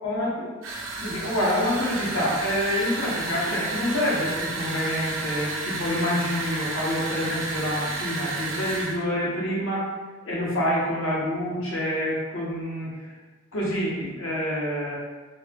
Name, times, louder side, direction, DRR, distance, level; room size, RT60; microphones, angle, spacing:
voice 1, 0.0-0.5 1.0-9.9 10.2-13.1 13.5-15.0, left 1 dB, 85° left, -5 dB, 1.2 m, -27 dB
sound 1, 0.6-9.0, right 3 dB, 90° right, 0.6 m, -32 dB
3.9 x 3.5 x 2.4 m, 1.3 s
head